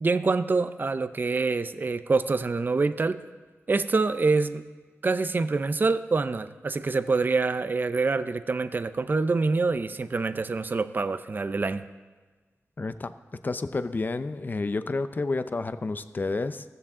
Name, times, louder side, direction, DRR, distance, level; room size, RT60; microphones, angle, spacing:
voice 1, 0.0-3.2 3.7-4.6 5.0-11.8, right 3 dB, 40° right, 12 dB, 0.5 m, -26 dB
voice 2, 12.8-13.1 13.4-16.6, left 3 dB, 40° left, 12 dB, 0.6 m, -30 dB
15.5 x 14.5 x 3.7 m, 1.3 s
wide cardioid pair, 85°, 5 cm